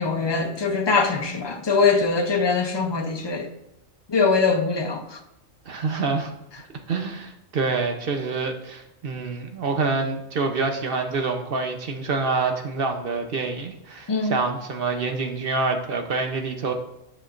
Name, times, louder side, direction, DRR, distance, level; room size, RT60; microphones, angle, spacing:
voice 1, 0.0-3.5 4.1-5.2 14.1-14.3, left 4 dB, 35° left, 0.4 m, -22 dB
voice 2, 5.7-6.3 6.9-16.7, right 4 dB, 50° right, 0.8 m, -26 dB
10.5 x 5.8 x 2.5 m
omnidirectional pair, 1.4 m